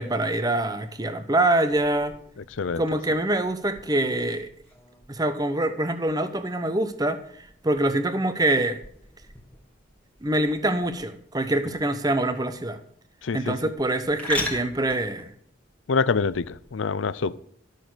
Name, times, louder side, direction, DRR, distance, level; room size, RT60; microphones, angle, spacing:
voice 1, 0.0-2.1 2.8-4.5 5.1-7.2 7.6-8.8 10.2-12.8 13.3-15.3, right 1 dB, 20° right, 0.9 m, -25 dB
sound 1, 1.6-16.7, left 2 dB, 5° left, 1.8 m, -41 dB
voice 2, 2.4-2.8 11.7-11.8 13.2-13.7 15.9-17.4, left 5 dB, 85° left, 0.5 m, -26 dB
12.5 x 6.6 x 7.8 m
head